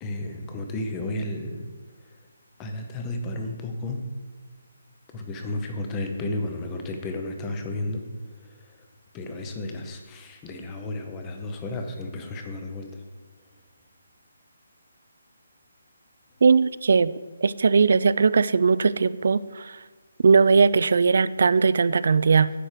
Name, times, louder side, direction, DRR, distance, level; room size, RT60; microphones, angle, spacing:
voice 1, 0.0-1.7 2.6-4.0 5.1-8.0 8.5-8.7 9.1-13.0, left 2 dB, 10° left, 4 dB, 0.6 m, -33 dB
voice 2, 16.4-17.1 17.4-19.8 20.2-22.5, right 5 dB, 50° right, 17 dB, 0.3 m, -19 dB
9.9 x 4.5 x 6.6 m, 1.4 s
hypercardioid pair, 175°, 0 cm